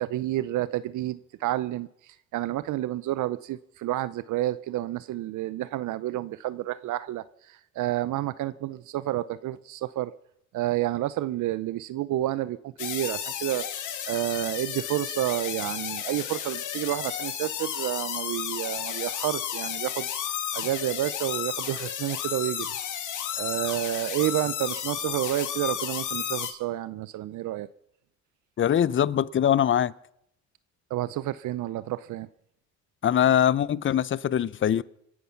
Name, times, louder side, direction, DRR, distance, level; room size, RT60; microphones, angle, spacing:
voice 1, 0.0-10.1 10.5-13.7 14.1-20.1 20.5-22.7 23.0-23.1 23.3-27.7 30.9-32.3, right 14 dB, 80° right, 0.6 m, -30 dB
sound 1, 12.8-26.5, left 9 dB, 80° left, 2.2 m, -33 dB
voice 2, 28.6-29.9 33.0-34.8, left 10 dB, 40° left, 0.6 m, -22 dB
26.5 x 9.4 x 5.8 m
cardioid pair, 90°, 30 cm